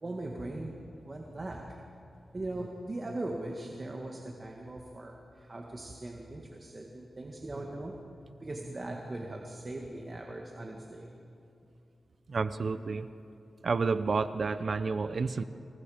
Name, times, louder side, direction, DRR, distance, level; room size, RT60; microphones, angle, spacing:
voice 1, 0.0-1.8 2.3-8.0 8.4-11.2, right 2 dB, 35° right, 1 dB, 1.8 m, -40 dB
voice 2, 12.3-13.1 13.6-15.4, right 4 dB, 55° right, 12 dB, 0.6 m, -30 dB
26.5 x 22.5 x 5.1 m, 2.7 s
wide cardioid pair, 100°, 0 cm